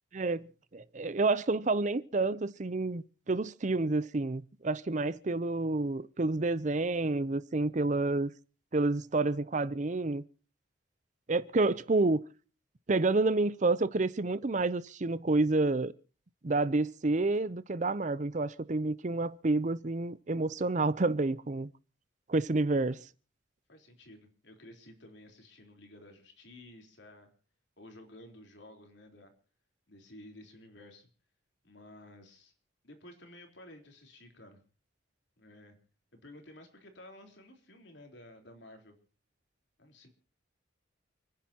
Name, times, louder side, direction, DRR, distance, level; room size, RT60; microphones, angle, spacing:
voice 1, 0.1-0.5 0.7-8.3 8.7-10.2 11.3-12.2 12.9-15.9 16.4-21.7 22.3-23.0, right 3 dB, 40° right, 0.6 m, -29 dB
voice 2, 23.7-27.3 27.8-29.3 29.9-31.1 31.6-32.5 32.8-34.6 35.4-35.8 36.1-39.0 39.8-40.1, left 1 dB, 65° left, 3.8 m, -53 dB
29.0 x 10.5 x 2.9 m
head